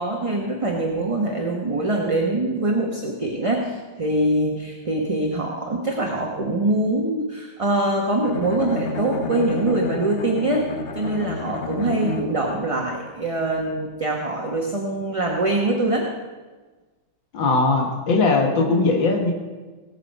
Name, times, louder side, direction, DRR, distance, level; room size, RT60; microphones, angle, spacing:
voice 1, 0.0-10.6 10.9-16.1, right 2 dB, 20° right, -1 dB, 0.9 m, -23 dB
Bowed string instrument, 8.2-12.6, left 3 dB, 55° left, 0.7 m, -30 dB
voice 2, 17.3-19.3, left 3 dB, 85° left, 2 dB, 2.1 m, -19 dB
18.0 x 7.2 x 5.3 m, 1.3 s
omnidirectional pair, 2.0 m